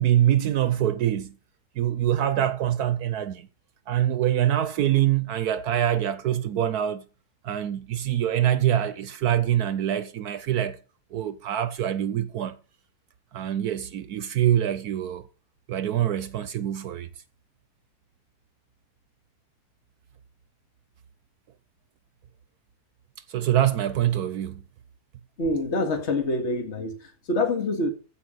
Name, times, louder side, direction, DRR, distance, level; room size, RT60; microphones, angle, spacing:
voice 1, 0.0-1.4 1.8-3.5 3.9-7.0 7.4-10.8 11.1-12.6 13.3-15.3 15.7-17.1 23.3-24.6, right 11 dB, 75° right, 1.3 m, -24 dB
voice 2, 25.4-27.9, left 2 dB, 45° left, 2.3 m, -26 dB
14.5 x 5.3 x 6.8 m
omnidirectional pair, 1.7 m